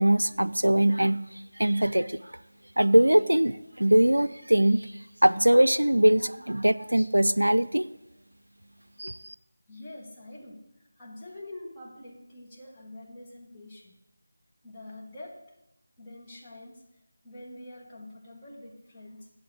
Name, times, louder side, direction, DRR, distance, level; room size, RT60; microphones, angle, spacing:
voice 1, 0.0-2.3 2.8-4.9 5.2-7.9 9.0-9.3, right 1 dB, 80° right, 15 dB, 0.4 m, -22 dB
voice 2, 9.7-14.0 14.6-15.6 16.0-16.8 17.2-19.3, left 1 dB, 15° left, -5 dB, 1.7 m, -45 dB
8.0 x 7.7 x 8.0 m, 0.90 s
figure-of-eight pair, 165°, 0 cm